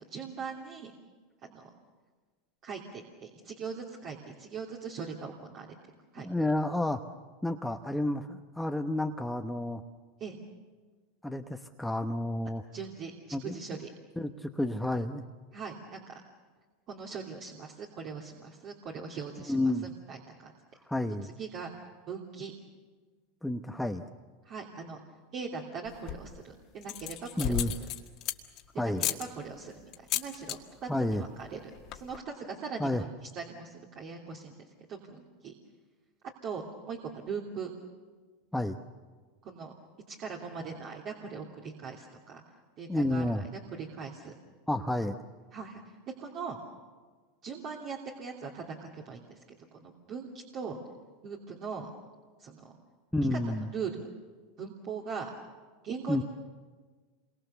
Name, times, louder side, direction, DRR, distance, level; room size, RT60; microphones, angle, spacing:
voice 1, 0.1-0.9 1.4-1.7 2.6-5.7 6.1-6.3 10.2-10.4 12.7-13.9 15.5-16.1 16.9-20.5 21.2-21.7 22.1-22.5 24.4-25.0 25.3-27.7 28.7-35.5 36.4-37.7 39.4-39.7 40.1-42.4 42.8-44.3 45.5-45.8 46.2-46.6 47.4-49.4 49.7-50.8 51.2-51.9 52.4-52.7 53.3-53.4 53.7-54.1 54.6-55.3 55.8-56.2, right 5 dB, 45° right, -1 dB, 2.9 m, -40 dB
voice 2, 6.2-7.0 7.4-9.8 11.2-12.6 13.3-13.5 14.2-15.2 19.5-19.9 20.9-21.3 23.4-24.1 27.4-27.7 28.8-29.0 30.9-31.2 32.8-33.0 38.5-38.8 42.9-43.4 44.7-45.2 53.1-53.7 56.1-56.2, left 1 dB, 5° left, 5 dB, 1.0 m, -30 dB
sound 1, 25.9-26.4 26.8-28.6 29.0-29.2 29.9-30.6 30.9-31.2 31.4-31.5 31.7-32.2, left 13 dB, 50° left, 1.8 m, -34 dB
27.5 x 23.0 x 7.0 m, 1.4 s
hypercardioid pair, 110°, 0 cm